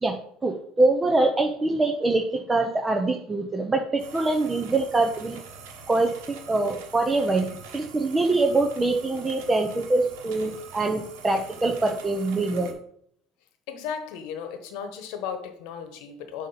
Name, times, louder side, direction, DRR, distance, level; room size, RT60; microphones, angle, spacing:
voice 1, 0.0-5.4 5.9-12.8, right 2 dB, 20° right, 3 dB, 0.7 m, -24 dB
sound 1, 4.0-12.7, right 5 dB, 80° right, 1.2 m, -45 dB
voice 2, 13.7-16.5, left 7 dB, 75° left, 6 dB, 1.1 m, -35 dB
7.1 x 2.9 x 5.7 m, 0.68 s
supercardioid pair, 90°, 0 cm